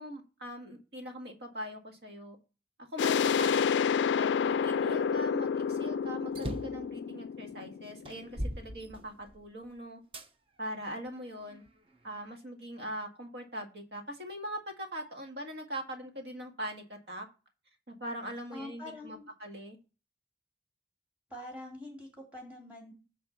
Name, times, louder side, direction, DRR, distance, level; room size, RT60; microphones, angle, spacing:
voice 1, 0.0-2.4 2.9-3.7 4.1-10.0 10.6-11.6 12.0-17.3 17.9-19.8, equal, 70° right, 3 dB, 1.8 m, -41 dB
sound 1, 3.0-8.5, left 7 dB, 85° left, 0.3 m, -29 dB
sound 2, 6.3-6.8 7.5-7.6 8.0-9.5 10.1-10.3 11.0-12.1, right 1 dB, 30° right, 0.7 m, -39 dB
voice 2, 18.5-19.3 21.3-22.9, left 1 dB, 10° right, -1 dB, 2.6 m, -45 dB
8.9 x 3.4 x 5.6 m, 0.32 s
head